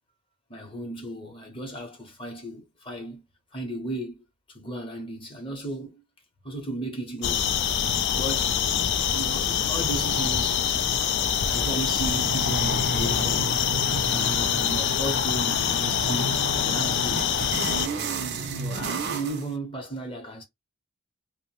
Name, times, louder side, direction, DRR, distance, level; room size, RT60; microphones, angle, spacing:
voice 1, 0.5-3.2 3.5-4.2 4.5-6.0 6.4-7.5 8.1-8.6 9.1-10.6 11.5-13.6 14.1-17.4 17.8-20.4, right 1 dB, 25° left, 0.8 m, -35 dB
sound 1, 7.2-17.9, left 8 dB, 55° left, 0.4 m, -25 dB
sound 2, 7.4-19.5, right 3 dB, 50° right, 0.5 m, -34 dB
2.5 x 2.1 x 3.0 m
head